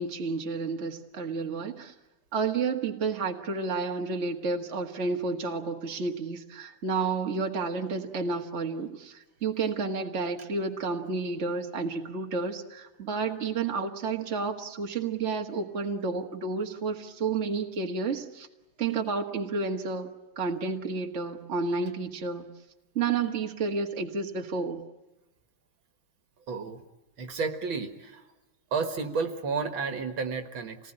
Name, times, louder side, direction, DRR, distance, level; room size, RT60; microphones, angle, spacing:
voice 1, 0.0-1.9 2.3-18.5 18.8-22.5 23.0-24.8, right 4 dB, 35° right, 3 dB, 1.9 m, -31 dB
voice 2, 26.5-26.8 27.2-28.2 28.7-30.9, right 5 dB, 65° right, 7 dB, 2.4 m, -31 dB
28.0 x 19.5 x 10.0 m, 1.0 s
omnidirectional pair, 2.3 m